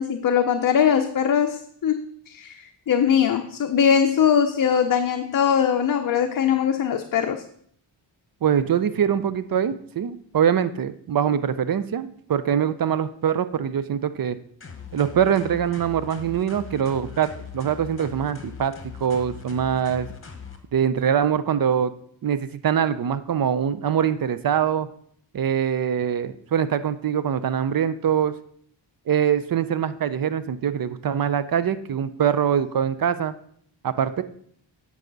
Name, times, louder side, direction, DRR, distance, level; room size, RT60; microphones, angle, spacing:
voice 1, 0.0-7.4, left 8 dB, 45° left, 6 dB, 0.6 m, -21 dB
voice 2, 8.4-14.4 14.9-18.7 19.0-20.1 20.7-21.9 22.2-24.9 25.3-28.3 29.1-33.3 33.8-34.2, right 8 dB, 50° right, 14 dB, 0.6 m, -23 dB
sound 1, 14.6-20.6, left 6 dB, 25° left, 1.2 m, -40 dB
9.0 x 4.9 x 4.0 m, 0.63 s
cardioid pair, 65°, 47 cm